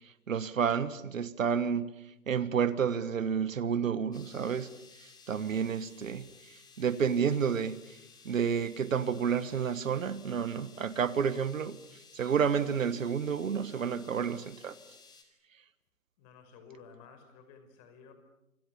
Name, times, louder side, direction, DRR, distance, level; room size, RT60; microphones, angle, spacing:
voice 1, 0.0-1.9 2.3-4.7 5.0-8.0 8.2-14.8, right 7 dB, 60° right, 1.5 m, -30 dB
sound 1, 4.1-15.2, left 5 dB, 10° left, 2.9 m, -57 dB
voice 2, 16.2-18.1, left 5 dB, 30° left, 5.0 m, -53 dB
28.0 x 27.0 x 7.0 m
figure-of-eight pair, 140°, 45 cm